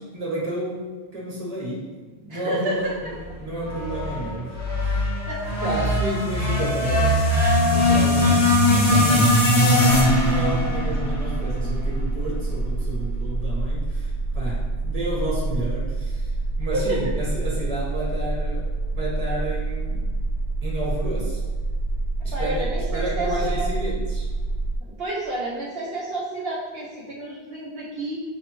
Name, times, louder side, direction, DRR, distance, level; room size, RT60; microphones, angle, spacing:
voice 1, 0.0-1.9 2.2-3.1 3.4-5.1 5.6-7.3 7.6-20.1 20.6-21.4 22.2-22.6 22.9-24.3, right 1 dB, 35° right, -5 dB, 1.3 m, -31 dB
voice 2, 2.3-2.9 5.3-5.5 16.7-17.0 22.3-23.7 25.0-28.2, right 2 dB, 65° right, -7 dB, 1.0 m, -29 dB
sound 1, 3.7-12.0, left 1 dB, 85° left, 1.2 m, -20 dB
sound 2, 9.9-24.8, right 2 dB, 60° left, 0.7 m, -27 dB
6.5 x 2.2 x 3.0 m, 1.4 s
omnidirectional pair, 1.1 m